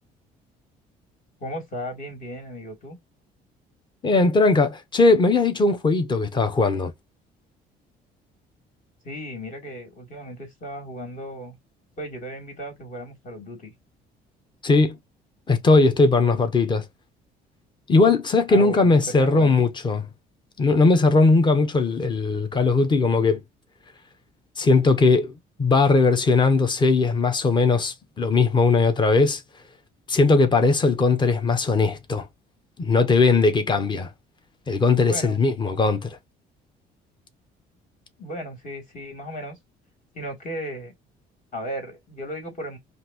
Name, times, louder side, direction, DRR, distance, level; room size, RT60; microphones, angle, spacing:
voice 1, 1.4-3.0 9.0-11.5 12.0-13.7 18.5-19.7 35.1-35.4 38.2-39.6 40.1-40.9 41.5-42.8, equal, 45° left, 3.3 m, -35 dB
voice 2, 4.0-6.9 14.6-15.0 15.5-16.9 17.9-20.1 20.6-23.4 24.6-25.3 25.6-29.4 30.1-32.3 32.8-34.1 34.7-36.2, left 3 dB, 25° left, 1.0 m, -19 dB
5.6 x 2.7 x 2.9 m
cardioid pair, 110°, 17 cm